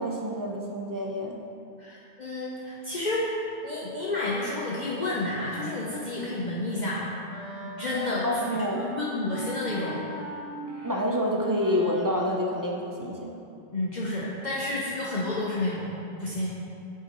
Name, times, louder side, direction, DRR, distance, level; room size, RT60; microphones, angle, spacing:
voice 1, 0.0-1.4 8.2-8.8 10.8-13.4, equal, 30° right, -1 dB, 0.4 m, -28 dB
voice 2, 1.8-3.4 3.6-7.0 7.6-10.0 10.7-10.9 13.7-15.9 16.2-16.5, left 2 dB, 50° left, -6 dB, 0.8 m, -30 dB
Wind instrument woodwind instrument, 6.8-13.5, left 1 dB, 85° left, 1.3 m, -40 dB
8.5 x 5.5 x 3.0 m, 2.6 s
omnidirectional pair, 1.0 m